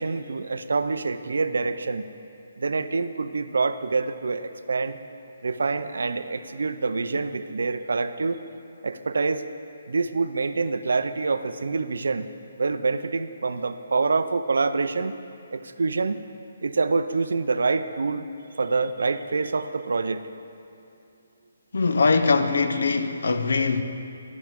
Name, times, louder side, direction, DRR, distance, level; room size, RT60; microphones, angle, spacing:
voice 1, 0.0-2.1 2.6-5.0 5.4-8.4 8.8-9.4 9.9-12.3 12.6-15.1 15.5-16.2 16.6-18.3 18.6-20.2, right 4 dB, 85° right, 11 dB, 0.4 m, -26 dB
voice 2, 21.7-23.8, left 4 dB, 80° left, 9 dB, 0.5 m, -22 dB
12.0 x 5.8 x 3.6 m, 2.7 s
hypercardioid pair, 170°, 0 cm